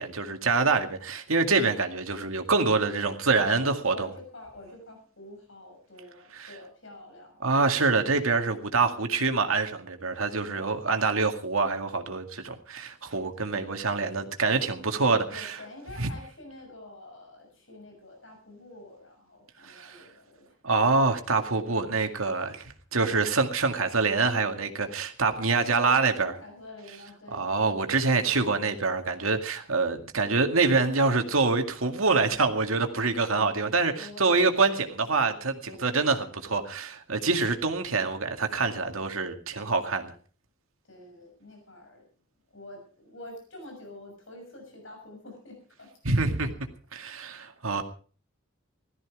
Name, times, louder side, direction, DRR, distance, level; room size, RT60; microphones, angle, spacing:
voice 1, 0.0-4.1 6.3-6.5 7.4-15.6 16.0-16.1 19.6-20.0 20.6-26.3 27.3-40.1 46.0-46.5 46.9-47.8, right 4 dB, 85° right, 2.1 m, -26 dB
voice 2, 3.5-7.4 13.3-13.6 14.8-15.0 15.3-20.5 25.3-27.5 33.9-34.8 35.6-36.3 37.2-37.3 40.9-42.0 42.5-45.9 47.1-47.4, left 2 dB, 65° left, 6.6 m, -47 dB
17.0 x 13.5 x 4.9 m
head